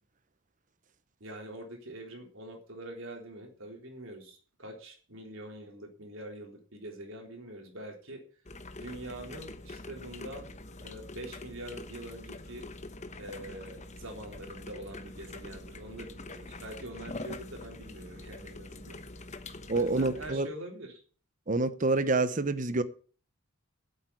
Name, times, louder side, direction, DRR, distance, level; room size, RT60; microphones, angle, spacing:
voice 1, 1.2-8.2 8.7-10.5 10.8-12.7 13.2-19.0 19.7-21.0, right 1 dB, 65° right, 3.7 m, -44 dB
sound 1, 8.5-20.3, left 2 dB, 35° left, 1.0 m, -45 dB
voice 2, 19.7-20.5 21.5-22.8, right 3 dB, 35° right, 0.9 m, -27 dB
9.1 x 8.2 x 8.4 m
head